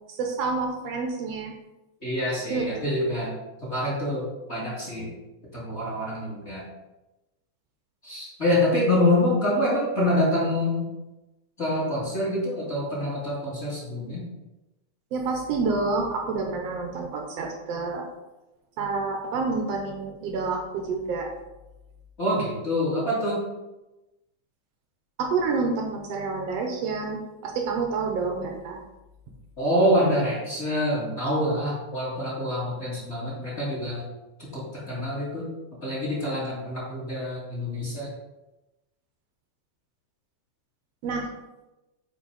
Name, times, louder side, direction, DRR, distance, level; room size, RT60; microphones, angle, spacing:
voice 1, 0.1-1.5 2.5-2.6 15.1-18.0 18.8-21.3 25.2-28.8 41.0-41.3, right 4 dB, 70° right, 1 dB, 1.8 m, -28 dB
voice 2, 2.0-3.3 3.6-5.1 5.5-6.6 8.0-10.9 11.6-14.2 22.2-23.4 29.6-34.1 34.4-35.4 35.8-38.1, left 1 dB, 25° left, -7 dB, 2.4 m, -26 dB
7.7 x 4.7 x 4.0 m, 1.0 s
omnidirectional pair, 3.4 m